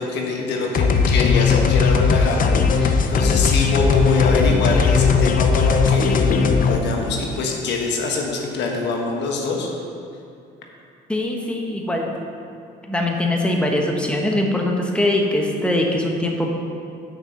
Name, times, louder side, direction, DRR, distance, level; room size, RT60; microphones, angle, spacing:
voice 1, 0.0-9.7, left 3 dB, 75° left, 1 dB, 1.3 m, -24 dB
sound 1, 0.7-6.8, left 5 dB, 50° left, 0.7 m, -17 dB
voice 2, 11.1-12.1 12.9-16.5, left 1 dB, 5° left, 0 dB, 1.2 m, -22 dB
6.5 x 5.9 x 6.9 m, 2.5 s
supercardioid pair, 80°, 18 cm